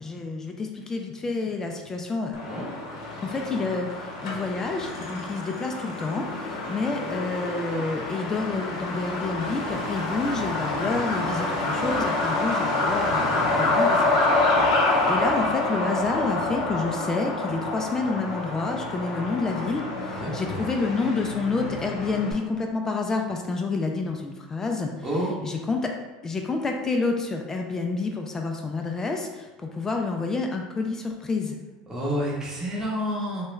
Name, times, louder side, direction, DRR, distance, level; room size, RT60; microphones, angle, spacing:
voice 1, 0.0-2.4 3.2-14.1 14.6-25.1 25.4-25.9 26.2-31.6, left 3 dB, 20° left, 2 dB, 0.3 m, -29 dB
Truck, 2.3-22.3, left 2 dB, 80° left, 0.8 m, -27 dB
voice 2, 13.1-13.8 20.1-20.7 25.0-25.3 31.9-33.4, equal, 20° right, -6 dB, 0.9 m, -30 dB
3.1 x 2.3 x 3.1 m, 1.2 s
supercardioid pair, 115°, 3 cm